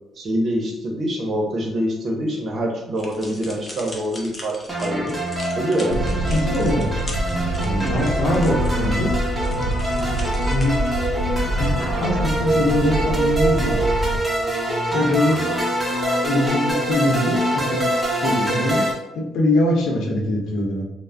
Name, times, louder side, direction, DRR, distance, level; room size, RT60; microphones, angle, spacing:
voice 1, 0.2-5.2 5.6-6.2, equal, 55° right, 0 dB, 0.7 m, -25 dB
sound 1, 2.9-10.6, left 2 dB, 30° left, 0.6 m, -40 dB
sound 2, 4.7-18.9, right 1 dB, 10° right, 0.8 m, -24 dB
sound 3, 5.9-14.2, right 1 dB, 90° right, 0.5 m, -25 dB
voice 2, 6.3-6.9 7.6-9.1 10.5-10.8 11.6-11.7 12.0-13.8 14.9-15.4 16.2-18.8 19.1-20.8, left 1 dB, 75° left, -1 dB, 0.6 m, -22 dB
2.3 x 2.0 x 3.3 m, 0.87 s
cardioid pair, 90°, 0 cm